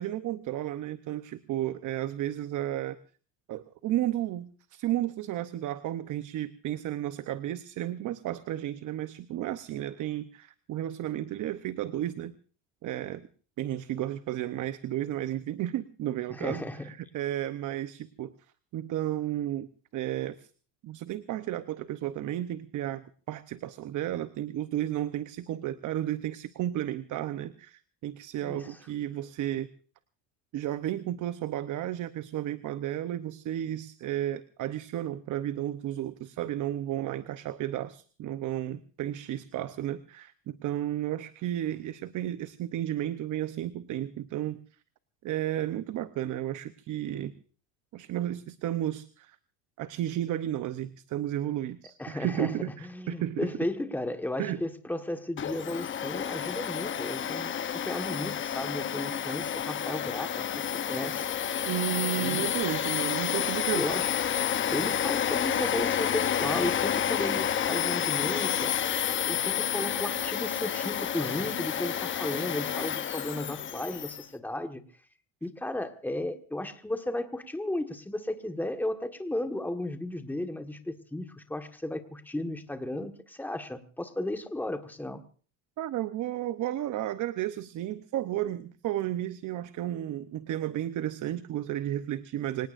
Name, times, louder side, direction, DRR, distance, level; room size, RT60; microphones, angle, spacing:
voice 1, 0.0-3.0 3.5-12.3 12.8-13.3 13.6-18.3 18.7-19.7 19.9-20.5 20.8-29.7 30.5-44.6 45.2-47.3 47.9-49.4 49.8-53.5 54.4-54.6 61.6-63.9 85.8-92.7, right 12 dB, 50° right, 12 dB, 0.9 m, -33 dB
voice 2, 16.3-16.9 28.4-28.8 52.0-57.5 57.8-61.3 62.2-62.5 63.7-64.1 64.7-68.8 69.3-74.8 75.4-85.2, left 1 dB, 5° left, 6 dB, 1.5 m, -34 dB
Domestic sounds home sounds, 55.4-74.2, left 9 dB, 30° left, 0.9 m, -30 dB
25.5 x 18.5 x 2.6 m, 0.40 s
cardioid pair, 130°, 40 cm